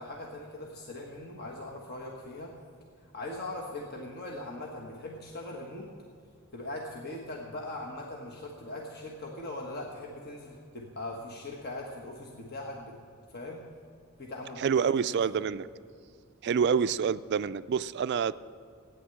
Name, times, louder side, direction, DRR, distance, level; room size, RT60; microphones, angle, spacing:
voice 1, 0.0-2.6 3.0-5.9 6.5-13.0 13.3-13.6 14.2-15.5, left 2 dB, 45° left, -1 dB, 1.3 m, -40 dB
voice 2, 14.6-15.7 16.4-18.3, right 6 dB, 50° right, 15 dB, 0.3 m, -27 dB
15.0 x 9.5 x 7.7 m, 2.4 s
head